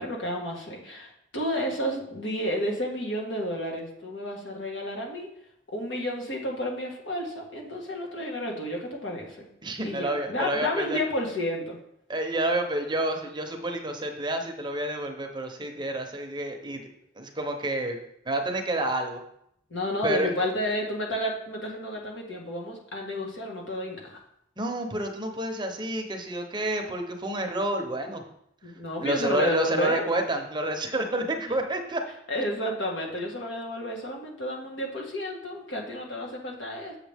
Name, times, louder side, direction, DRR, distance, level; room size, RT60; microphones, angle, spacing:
voice 1, 0.0-5.3 5.7-9.5 9.8-11.8 19.7-24.2 28.6-30.0 32.3-37.0, equal, 70° left, -1 dB, 1.7 m, -31 dB
voice 2, 9.6-11.0 12.1-16.8 17.2-18.0 18.3-19.2 20.0-20.3 24.6-28.2 29.0-32.0, right 1 dB, 25° right, 4 dB, 0.8 m, -29 dB
7.2 x 7.0 x 3.5 m, 0.74 s
head